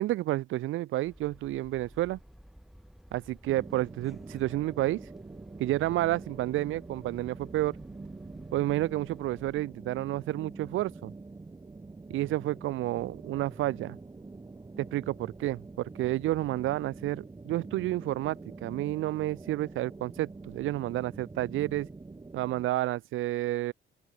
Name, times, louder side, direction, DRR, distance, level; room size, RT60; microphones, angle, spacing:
voice 1, 0.0-2.2 3.1-5.1 5.6-7.8 8.5-11.1 12.1-14.0 14.8-21.9 22.3-23.7, right 16 dB, 85° right, 0.9 m, -30 dB
sound 1, 1.0-9.6, equal, ahead, 2.5 m, -54 dB
sound 2, 3.5-22.7, right 3 dB, 20° right, 1.4 m, -46 dB
open air
cardioid pair, 90°, 20 cm